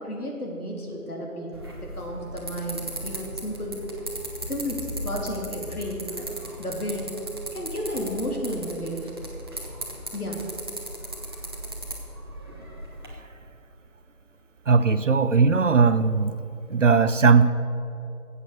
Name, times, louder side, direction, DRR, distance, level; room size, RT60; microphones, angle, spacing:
voice 1, 0.0-3.8 4.4-6.3 6.6-7.1 7.5-9.1 10.1-10.4, equal, 75° left, -1 dB, 3.4 m, -32 dB
sound 1, 1.5-13.1, right 1 dB, 15° right, 0.9 m, -37 dB
voice 2, 14.7-16.4 16.7-17.5, right 5 dB, 55° right, 12 dB, 0.6 m, -18 dB
13.0 x 8.3 x 6.7 m, 2.8 s
figure-of-eight pair, 160°, 45 cm